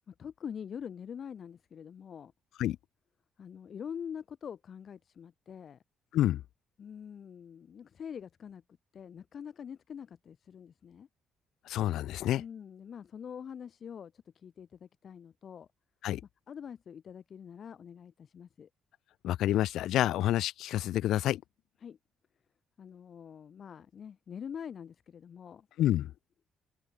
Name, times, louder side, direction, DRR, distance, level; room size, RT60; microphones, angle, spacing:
voice 1, 0.1-2.3 3.4-5.8 6.8-8.6 8.9-11.1 12.4-15.7 16.5-18.7 21.8-22.0 22.8-25.7, left 7 dB, 50° left, 2.8 m, -44 dB
voice 2, 11.7-12.4 16.0-16.2 19.2-21.4 25.8-26.1, left 13 dB, 80° left, 0.4 m, -28 dB
cardioid pair, 110°, 0 cm